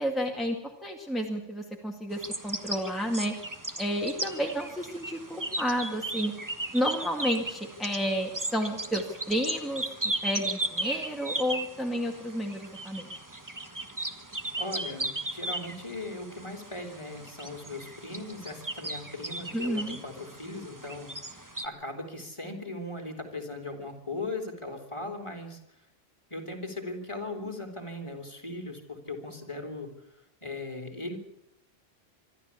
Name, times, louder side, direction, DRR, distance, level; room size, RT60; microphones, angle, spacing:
voice 1, 0.0-3.3 3.8-6.3 6.7-9.8 10.2-13.1 19.5-20.0, equal, ahead, 0 dB, 2.0 m, -31 dB
sound 1, 2.1-21.7, right 1 dB, 15° right, 1.3 m, -36 dB
voice 2, 14.6-25.6 26.3-29.9 30.4-31.2, left 2 dB, 25° left, 4 dB, 3.3 m, -38 dB
25.5 x 12.5 x 8.4 m, 0.89 s
omnidirectional pair, 1.2 m